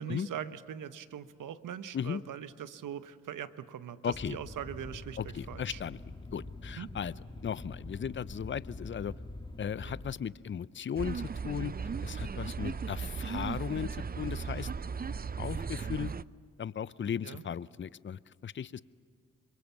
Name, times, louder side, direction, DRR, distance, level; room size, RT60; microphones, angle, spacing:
voice 1, 0.0-5.8 6.7-6.9 9.8-10.0 17.2-17.4, right 9 dB, 70° right, 12 dB, 1.1 m, -41 dB
voice 2, 4.0-4.4 5.2-6.0 6.3-7.1 7.4-9.1 9.6-11.7 12.0-14.7 15.4-16.1 16.6-18.8, left 8 dB, 35° left, 19 dB, 0.6 m, -36 dB
sound 1, 4.1-10.1, left 2 dB, 15° left, 2.1 m, -45 dB
sound 2, 11.0-16.2, right 5 dB, 30° right, 0.6 m, -36 dB
26.0 x 23.0 x 7.2 m, 2.2 s
supercardioid pair, 50°, 33 cm